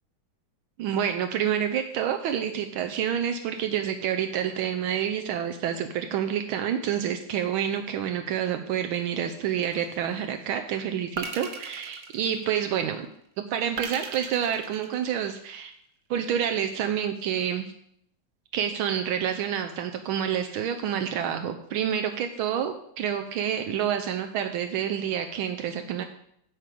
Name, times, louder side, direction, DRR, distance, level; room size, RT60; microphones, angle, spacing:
voice 1, 0.8-13.1 13.4-15.7 16.1-17.7 18.5-26.0, right 9 dB, 80° right, 7 dB, 1.5 m, -28 dB
sound 1, 9.6-10.2 11.2-12.8 13.8-15.5, right 5 dB, 50° right, 1.2 m, -38 dB
9.0 x 5.0 x 7.6 m, 0.71 s
omnidirectional pair, 2.2 m